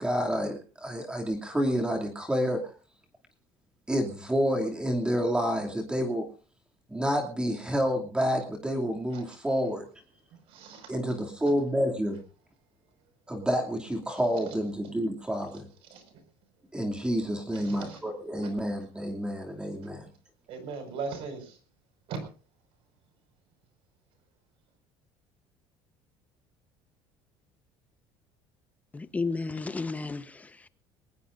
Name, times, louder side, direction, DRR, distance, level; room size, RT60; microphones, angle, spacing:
voice 1, 0.0-2.6 3.9-6.3 6.9-9.9 10.9-12.2 13.3-15.7 16.7-20.1, equal, 10° right, 2.7 m, -29 dB
voice 2, 9.1-9.7 10.3-11.5 14.5-14.6 15.8-16.1 17.5-18.0 18.4-18.6 20.5-21.6 22.1-22.3, right 4 dB, 65° right, 5.7 m, -40 dB
voice 3, 28.9-30.7, left 3 dB, 15° left, 1.0 m, -33 dB
22.0 x 18.5 x 2.6 m
cardioid pair, 135°, 10 cm